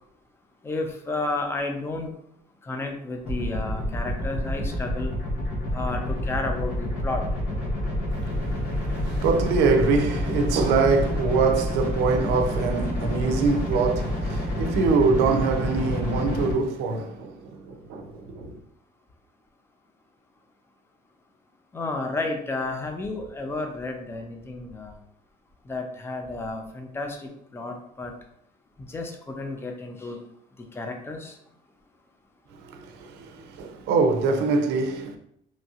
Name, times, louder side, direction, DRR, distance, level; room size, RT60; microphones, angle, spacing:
voice 1, 0.6-2.1 2.6-5.1 5.7-7.2 21.7-25.0 25.7-28.1 28.8-30.2 30.7-31.4, left 2 dB, 15° left, 0.4 m, -32 dB
sound 1, 3.2-16.5, left 1 dB, 80° left, 1.3 m, -28 dB
voice 2, 8.1-18.5 32.6-35.2, right 4 dB, 85° right, 0.4 m, -24 dB
3.0 x 2.4 x 2.7 m
cardioid pair, 110°, 17 cm